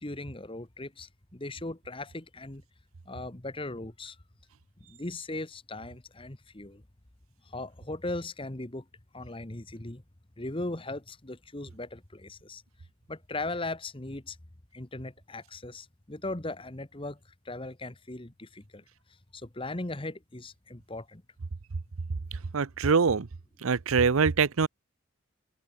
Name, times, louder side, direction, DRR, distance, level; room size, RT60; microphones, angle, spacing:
voice 1, 0.0-2.6 3.0-4.2 4.8-6.8 7.5-8.8 9.1-10.0 10.4-12.6 13.1-14.4 14.7-17.2 17.4-18.8 19.3-21.2, left 2 dB, 25° left, 1.3 m, -38 dB
voice 2, 22.5-23.3 23.6-24.7, right 5 dB, 85° right, 0.7 m, -24 dB
open air
head